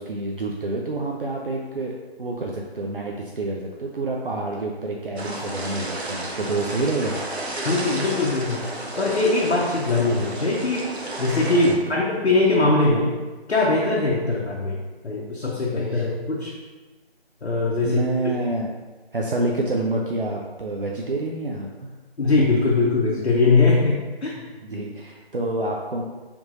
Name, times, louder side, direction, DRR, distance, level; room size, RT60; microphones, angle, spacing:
voice 1, 0.0-7.2 11.7-11.8 15.9-16.1 17.8-18.7 19.1-21.9 24.6-26.0, right 2 dB, 60° right, -1 dB, 0.5 m, -28 dB
sound 1, 5.2-11.7, right 1 dB, 85° right, 0.9 m, -32 dB
voice 2, 7.6-8.7 9.0-10.9 11.2-13.1 13.5-14.8 15.0-16.5 17.4-18.4 22.2-24.5, left 3 dB, 80° left, -4 dB, 0.8 m, -21 dB
3.5 x 3.1 x 3.8 m, 1.2 s
figure-of-eight pair, 170°, 32 cm